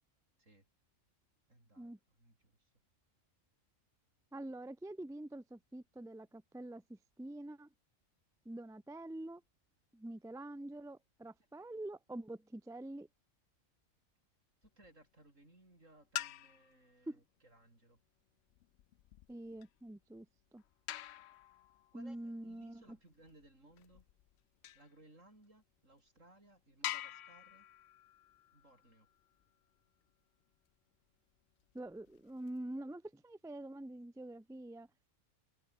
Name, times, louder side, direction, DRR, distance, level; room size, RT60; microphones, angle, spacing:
voice 1, 1.5-1.9 2.2-2.7 14.6-18.0 21.9-24.1 24.7-27.7 28.5-29.1, right 1 dB, 70° right, 8.2 m, -63 dB
voice 2, 4.3-7.7 8.4-9.4 9.9-13.1 17.1-17.2 19.3-20.3 20.5-20.6 21.9-23.0 31.7-34.9, right 1 dB, 5° right, 0.3 m, -46 dB
sound 1, 14.6-15.1 16.0-16.9 18.5-25.0 25.6-25.7 26.2-26.3 26.8-29.5 31.6-32.6, left 13 dB, 65° left, 0.7 m, -47 dB
omnidirectional pair, 1.4 m